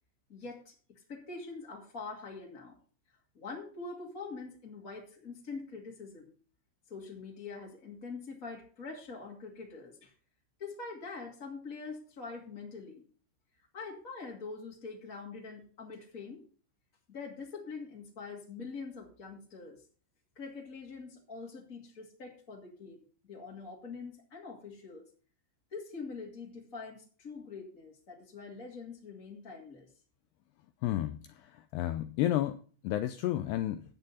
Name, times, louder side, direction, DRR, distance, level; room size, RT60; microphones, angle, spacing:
voice 1, 0.3-2.8 3.3-6.3 6.9-10.1 10.6-13.0 13.7-16.4 17.1-19.8 20.4-23.0 23.3-25.1 25.7-29.9, left 4 dB, 25° left, 1.8 m, -44 dB
voice 2, 30.8-31.2 31.5-32.6 32.8-33.8, left 13 dB, 80° left, 2.4 m, -31 dB
14.0 x 9.0 x 4.1 m
omnidirectional pair, 5.3 m